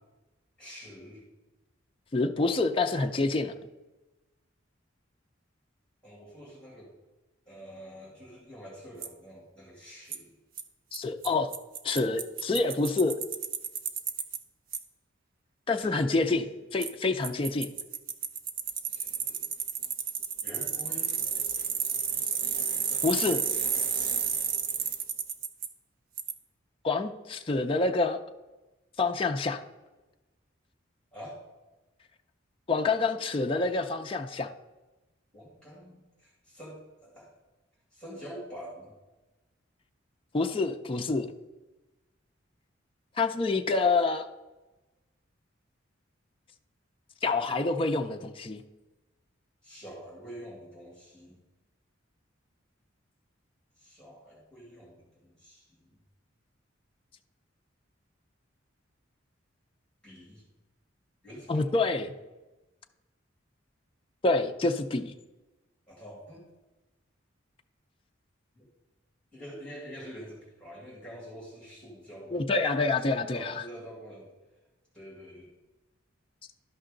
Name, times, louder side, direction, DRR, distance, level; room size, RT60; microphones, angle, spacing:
voice 1, 0.6-1.2 6.0-6.9 7.5-10.3 15.7-16.7 18.9-19.5 20.4-21.1 31.1-31.4 35.3-37.3 37.9-38.9 49.6-51.4 53.8-56.0 60.0-60.4 61.2-61.7 65.9-66.4 68.5-68.7 69.3-72.3 73.0-74.3 74.9-75.5, equal, 5° left, -5 dB, 2.3 m, -46 dB
voice 2, 2.1-3.5 10.9-11.5 11.8-13.2 15.7-17.7 23.0-23.4 26.8-28.2 29.0-29.6 32.7-34.5 40.3-41.3 43.2-44.3 47.2-48.6 61.5-62.1 64.2-65.1 72.3-73.5, left 3 dB, 25° left, 5 dB, 0.4 m, -27 dB
Bicycle, 9.0-9.1 10.1-10.2 10.6-10.7 10.9-11.0 11.2-11.3 11.5-14.4 14.7-14.8 16.8-16.9 17.2-25.7 26.2-26.3, right 7 dB, 45° right, 0.6 m, -31 dB
12.0 x 5.5 x 3.8 m, 1.1 s
head